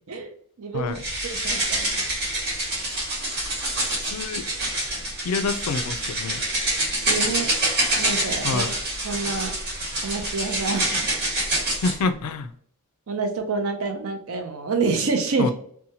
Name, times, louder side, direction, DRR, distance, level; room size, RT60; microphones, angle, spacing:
voice 1, 0.6-0.9 1.2-2.0 7.1-7.5 8.0-8.6 9.0-9.5 10.0-11.1 13.1-15.5, right 4 dB, 65° right, 4 dB, 0.6 m, -27 dB
sound 1, 0.9-12.0, right 1 dB, 50° right, 1.0 m, -26 dB
voice 2, 4.1-4.5 5.2-6.4 8.4-8.7 11.8-12.5 15.4-15.5, left 4 dB, 85° left, 10 dB, 0.4 m, -27 dB
2.7 x 2.2 x 2.7 m, 0.63 s
head